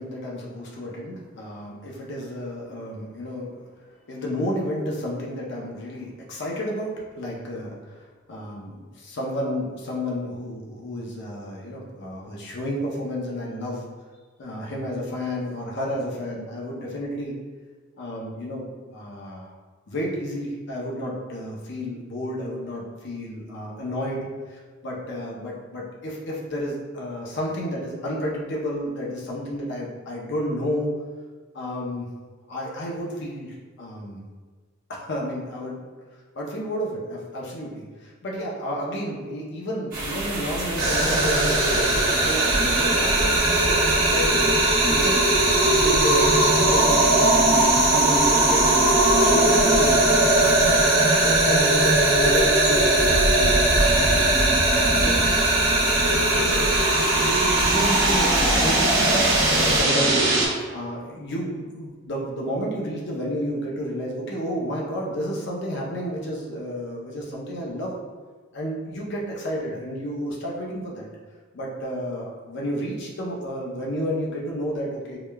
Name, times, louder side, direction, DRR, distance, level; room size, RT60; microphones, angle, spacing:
voice 1, 0.0-3.6 4.1-13.8 14.4-17.4 18.0-19.5 19.9-30.9 31.5-32.1 32.5-34.2 34.9-35.8 36.4-44.4 44.8-48.6 49.1-54.4 54.7-55.4 56.0-56.7 57.1-60.2 60.7-68.0 68.5-71.1 71.5-75.2, equal, 60° left, -3 dB, 0.6 m, -31 dB
sound 1, 39.9-59.8, right 1 dB, 45° right, 1.1 m, -28 dB
sound 2, 40.8-60.5, right 2 dB, 70° right, 1.0 m, -19 dB
4.7 x 2.2 x 2.2 m, 1.4 s
head